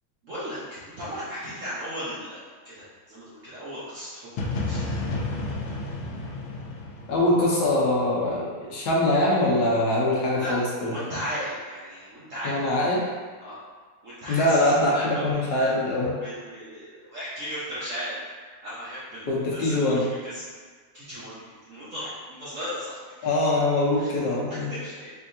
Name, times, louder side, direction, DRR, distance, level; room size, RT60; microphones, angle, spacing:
voice 1, 0.2-5.0 5.6-5.9 10.3-10.6 10.8-12.5 13.4-13.6 14.0-15.2 16.0-18.2 18.6-20.4 20.9-21.4 21.7-23.3 24.0-24.1 24.5-25.1, equal, 60° right, -11 dB, 0.8 m, -36 dB
sound 1, 4.4-8.2, left 2 dB, 85° left, 1.4 m, -31 dB
voice 2, 7.1-10.9 12.4-13.1 14.3-16.2 19.3-20.1 23.2-24.7, left 1 dB, 65° left, -5 dB, 1.1 m, -23 dB
3.7 x 3.4 x 2.6 m, 1.6 s
omnidirectional pair, 2.3 m